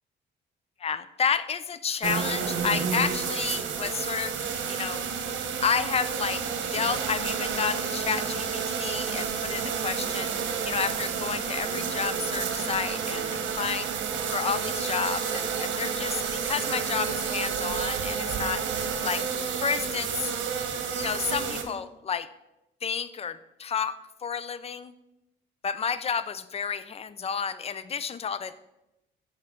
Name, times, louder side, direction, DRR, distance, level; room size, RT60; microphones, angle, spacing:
voice 1, 0.8-4.4 4.7-5.1 5.6-6.4 6.7-10.3 10.6-13.9 14.3-18.6 19.0-19.3 19.6-20.3 20.9-22.3 22.8-24.9 25.6-28.6, left 6 dB, 30° left, 14 dB, 0.4 m, -31 dB
sound 1, 2.0-21.6, right 6 dB, 70° right, 1.0 m, -30 dB
7.5 x 5.7 x 3.8 m, 0.91 s
cardioid pair, 90°, 20 cm